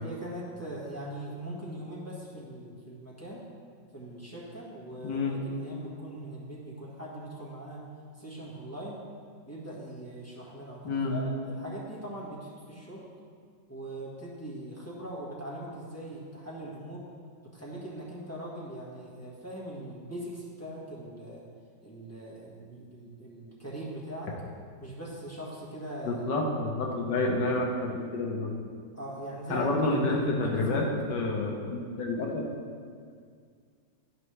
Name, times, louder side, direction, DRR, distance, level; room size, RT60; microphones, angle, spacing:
voice 1, 0.0-3.4 3.9-7.8 8.2-9.0 9.5-13.1 13.7-17.1 17.5-21.4 21.8-24.3 24.8-26.2 28.9-30.9, right 1 dB, 10° left, -7 dB, 1.3 m, -41 dB
voice 2, 5.0-5.3 10.8-11.1 26.1-28.5 29.5-32.5, left 2 dB, 75° left, 0 dB, 1.4 m, -29 dB
11.0 x 5.3 x 3.2 m, 2.1 s
omnidirectional pair, 2.0 m